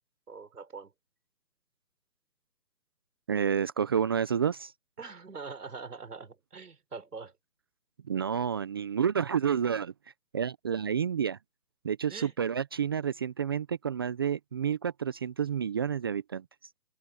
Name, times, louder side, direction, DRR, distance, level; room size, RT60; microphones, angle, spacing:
voice 1, 0.3-0.9 5.0-7.3 12.1-12.3, right 4 dB, 65° right, 4.8 m, -43 dB
voice 2, 3.3-4.7 8.1-9.9 10.3-11.4 11.8-16.4, right 8 dB, 15° right, 0.8 m, -29 dB
figure-of-eight pair, 150°, 50 cm